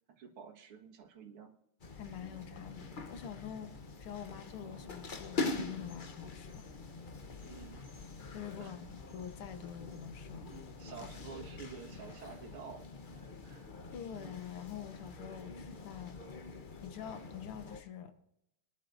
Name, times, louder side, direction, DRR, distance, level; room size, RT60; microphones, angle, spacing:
voice 1, 0.1-1.5 7.4-7.9 8.6-8.7 10.8-13.7, right 6 dB, 80° right, 1 dB, 2.6 m, -50 dB
sound 1, 1.8-17.8, left 3 dB, 45° left, 0.6 m, -44 dB
voice 2, 2.0-3.7 4.0-6.7 8.3-10.5 11.0-11.1 13.9-16.2 16.8-18.1, left 9 dB, 85° left, 8 dB, 2.1 m, -46 dB
25.0 x 10.5 x 2.6 m, 0.83 s
omnidirectional pair, 2.4 m